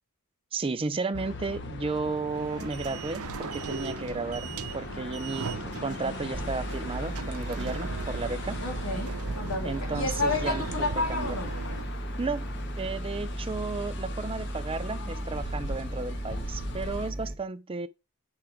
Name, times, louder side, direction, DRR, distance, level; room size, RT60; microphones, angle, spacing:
voice 1, 0.5-8.6 9.6-10.6 11.0-11.3 12.2-12.5 12.8-17.9, right 4 dB, 25° right, 0.5 m, -33 dB
sound 1, 1.1-17.1, left 3 dB, 55° left, 1.3 m, -40 dB
sound 2, 2.3-11.8, right 4 dB, 85° right, 0.7 m, -38 dB
sound 3, 6.3-17.3, right 1 dB, 5° left, 1.8 m, -36 dB
voice 2, 8.6-11.5, left 3 dB, 70° left, 2.5 m, -31 dB
8.9 x 5.0 x 4.4 m
head